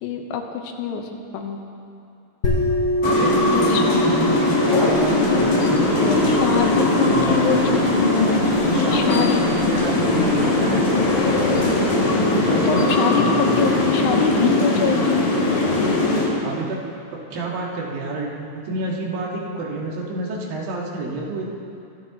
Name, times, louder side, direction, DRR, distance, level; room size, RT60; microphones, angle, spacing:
voice 1, 0.0-1.6 3.5-4.0 6.0-6.9 7.3-7.6 7.9-9.4 12.7-13.2 13.6-15.2, left 6 dB, 90° left, 3 dB, 2.8 m, -25 dB
sound 1, 2.4-11.8, equal, 35° left, 2.4 m, -27 dB
sound 2, 3.0-16.3, left 2 dB, 60° left, 3.7 m, -20 dB
voice 2, 3.0-6.7 7.0-7.6 8.7-10.9 12.4-13.5 16.4-16.8 17.1-21.5, right 3 dB, 75° right, -2 dB, 3.4 m, -29 dB
23.5 x 13.0 x 3.0 m, 2.6 s
omnidirectional pair, 4.2 m